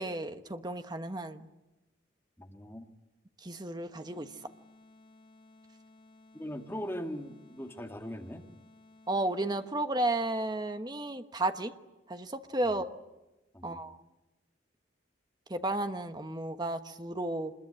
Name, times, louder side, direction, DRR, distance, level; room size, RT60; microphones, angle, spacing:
voice 1, 0.0-1.5 3.4-4.3 9.1-11.7 12.1-13.0 13.6-14.0 15.5-17.5, right 2 dB, 20° right, 8 dB, 1.2 m, -33 dB
voice 2, 2.4-2.9 6.3-8.5 12.6-12.9 13.5-13.8, equal, 10° left, 3 dB, 2.2 m, -40 dB
sound 1, 4.0-9.9, left 2 dB, 30° left, 5.6 m, -58 dB
26.5 x 21.5 x 9.9 m, 1.0 s
head